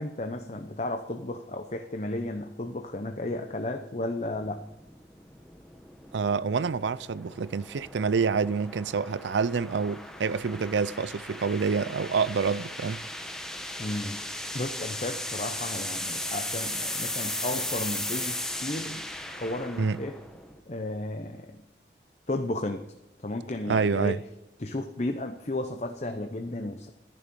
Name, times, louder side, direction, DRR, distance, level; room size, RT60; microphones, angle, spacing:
voice 1, 0.0-4.6 13.8-14.2 14.5-20.2 20.7-21.6 22.3-22.8 23.2-24.2 24.6-26.9, left 1 dB, 40° left, 0.8 m, -33 dB
sound 1, 4.4-20.6, left 1 dB, 5° left, 1.1 m, -37 dB
voice 2, 6.1-13.0 19.8-20.0 23.7-24.2, right 5 dB, 80° right, 0.5 m, -27 dB
14.0 x 10.5 x 5.3 m
head